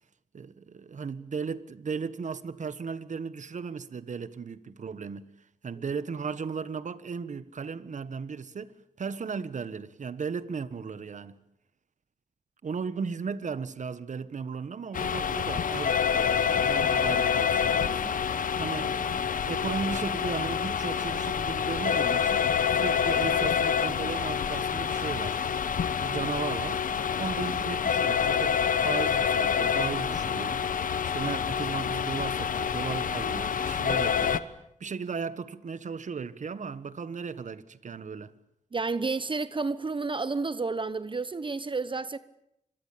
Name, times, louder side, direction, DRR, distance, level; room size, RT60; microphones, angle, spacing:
voice 1, 0.3-5.3 5.6-8.7 9.0-11.4 12.6-18.2 18.6-22.4 22.7-25.4 26.0-26.8 27.2-30.6 31.1-34.4 34.8-38.3, right 5 dB, 65° right, 1.5 m, -36 dB
sound 1, 14.9-34.4, left 7 dB, 85° left, 1.2 m, -27 dB
voice 2, 38.7-42.2, right 3 dB, 40° right, 0.9 m, -30 dB
26.0 x 22.0 x 8.6 m
cardioid pair, 75°, 14 cm